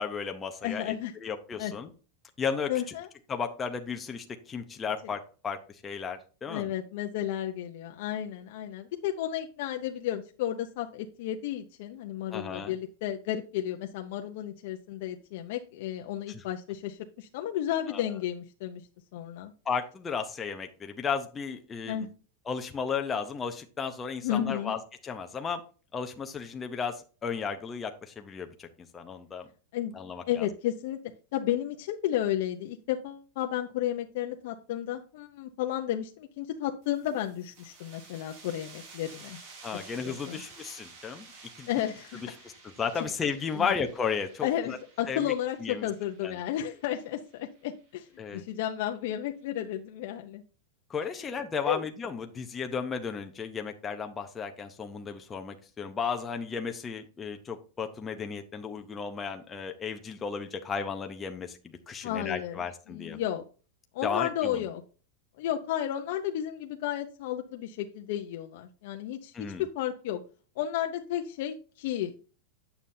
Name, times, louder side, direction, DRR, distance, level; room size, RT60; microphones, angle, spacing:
voice 1, 0.0-0.9 1.2-1.9 2.4-2.7 3.3-6.7 12.3-12.7 16.3-16.4 17.9-18.2 19.7-22.1 22.5-25.6 25.9-28.7 28.9-29.5 29.9-30.5 39.6-41.3 41.6-41.7 42.2-42.3 42.8-44.8 45.1-45.3 45.6-45.9 46.2-46.3 48.2-48.4 50.9-61.6 61.9-63.2 64.0-64.6 69.3-69.6, left 6 dB, 15° left, 5 dB, 0.7 m, -34 dB
voice 2, 0.6-1.1 1.6-1.7 2.7-3.1 6.5-18.8 19.1-19.5 21.9-22.1 24.2-24.7 29.7-30.0 30.3-31.0 31.3-39.4 40.0-40.4 41.7-42.2 43.5-43.7 44.4-48.1 48.3-50.4 51.7-51.8 62.0-63.4 63.9-64.8 65.4-70.2 70.6-72.2, left 11 dB, 55° left, 3 dB, 0.7 m, -32 dB
sound 1, 36.8-48.2, right 4 dB, 50° right, 4.3 m, -52 dB
9.4 x 7.0 x 2.7 m, 0.36 s
supercardioid pair, 165°, 0 cm